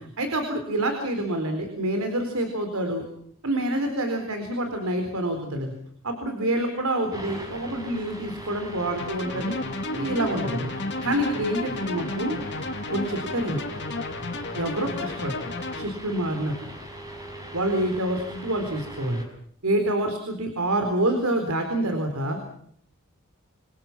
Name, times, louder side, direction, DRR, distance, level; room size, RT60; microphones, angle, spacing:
voice 1, 0.0-3.0 3.4-5.7 6.0-10.7 11.0-12.4 12.9-13.6 14.5-16.5 17.5-19.2 19.6-22.4, right 1 dB, 85° right, 5 dB, 4.1 m, -27 dB
sound 1, 7.1-19.2, right 1 dB, 15° right, 6.4 m, -40 dB
sound 2, 9.0-15.8, left 2 dB, 55° left, 2.3 m, -32 dB
28.0 x 24.5 x 6.0 m, 0.64 s
head